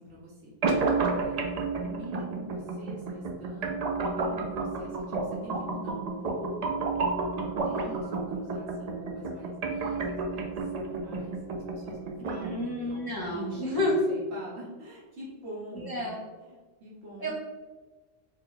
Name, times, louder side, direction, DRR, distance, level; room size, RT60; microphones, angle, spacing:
voice 1, 0.0-1.4 1.8-6.9 7.3-17.3, right 1 dB, 70° right, -6 dB, 1.5 m, -44 dB
sound 1, 0.6-12.6, right 3 dB, 55° right, 0.5 m, -31 dB
voice 2, 12.2-13.9 15.7-16.2 17.2-17.3, left 1 dB, 25° left, -4 dB, 0.5 m, -31 dB
4.0 x 2.2 x 3.9 m, 1.3 s
omnidirectional pair, 1.2 m